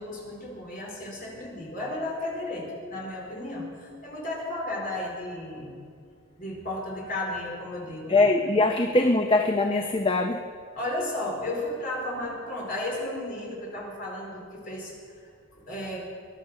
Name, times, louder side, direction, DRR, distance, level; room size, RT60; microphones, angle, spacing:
voice 1, 0.0-5.7 6.4-8.2 10.7-14.9 15.6-16.1, left 1 dB, 40° left, -2 dB, 4.4 m, -34 dB
voice 2, 8.1-10.4, left 2 dB, 25° left, 5 dB, 0.7 m, -22 dB
22.0 x 11.5 x 5.7 m, 2.2 s
head